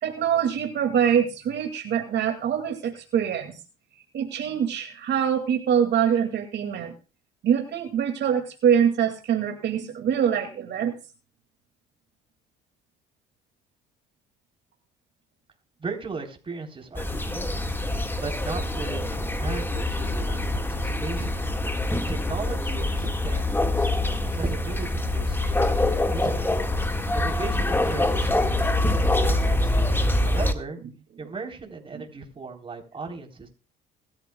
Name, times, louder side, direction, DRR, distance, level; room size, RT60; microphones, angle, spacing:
voice 1, 0.0-3.6 4.1-6.9 7.4-10.9 29.8-29.9 31.9-32.0, right 8 dB, 60° right, 4 dB, 2.3 m, -24 dB
voice 2, 15.8-17.6 18.2-21.4 22.1-26.6 27.1-29.7 30.2-30.8 31.2-33.5, right 4 dB, 25° right, 3 dB, 3.9 m, -37 dB
sound 1, 17.0-30.5, left 1 dB, 10° left, 1.8 m, -25 dB
21.0 x 13.5 x 2.3 m, 0.34 s
cardioid pair, 105°, 20 cm